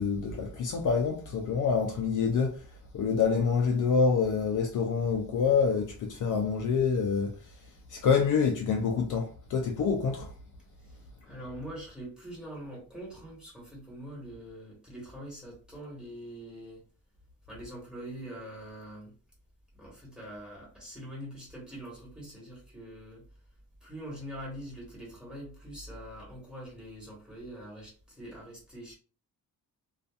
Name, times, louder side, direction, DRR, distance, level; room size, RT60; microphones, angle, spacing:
voice 1, 0.0-2.7 2.9-7.5 7.9-10.3, left 5 dB, 60° left, 0.5 m, -27 dB
voice 2, 10.8-16.8 17.5-19.1 19.7-23.3 23.8-28.9, right 1 dB, ahead, 1.3 m, -44 dB
2.7 x 2.4 x 2.3 m
wide cardioid pair, 150°, 36 cm